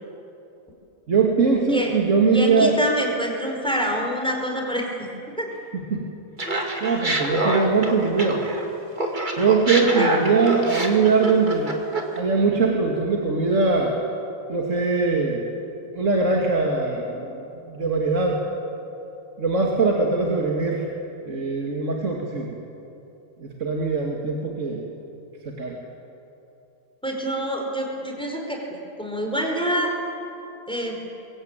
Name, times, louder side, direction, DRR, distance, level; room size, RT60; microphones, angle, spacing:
voice 1, 1.1-2.8 5.7-6.1 6.8-8.4 9.4-11.7 12.2-13.9 14.5-15.4 15.9-17.4 17.7-18.4 19.4-20.9 21.2-22.5 23.4-24.8 25.5-25.8, right 4 dB, 65° right, -1 dB, 2.6 m, -21 dB
voice 2, 2.3-5.1 5.4-5.5 6.7-6.8 9.9-10.1 27.0-28.6 29.0-29.9 30.7-31.0, equal, 5° left, 0 dB, 4.7 m, -26 dB
Laughter, 6.4-8.7 9.0-12.2, right 1 dB, 35° right, 2.6 m, -26 dB
24.5 x 22.0 x 9.0 m, 2.8 s
omnidirectional pair, 1.4 m